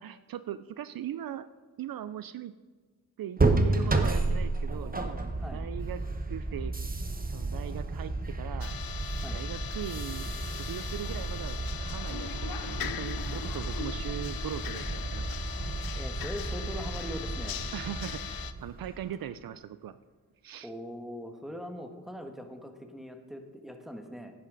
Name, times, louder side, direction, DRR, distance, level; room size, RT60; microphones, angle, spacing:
voice 1, 0.0-1.5 1.8-2.5 3.2-6.0 6.3-6.7 7.3-8.7 9.3-10.3 10.6-15.3 17.7-20.0 20.4-20.7, right 10 dB, 70° right, 13 dB, 0.5 m, -39 dB
sound 1, 3.4-19.1, right 2 dB, 25° right, 1.0 m, -32 dB
sound 2, 8.6-18.5, left 9 dB, 70° left, 0.6 m, -40 dB
voice 2, 15.9-17.6 20.6-24.3, equal, ahead, 5 dB, 1.4 m, -41 dB
10.5 x 9.8 x 3.9 m, 1.4 s
cardioid pair, 65°, 37 cm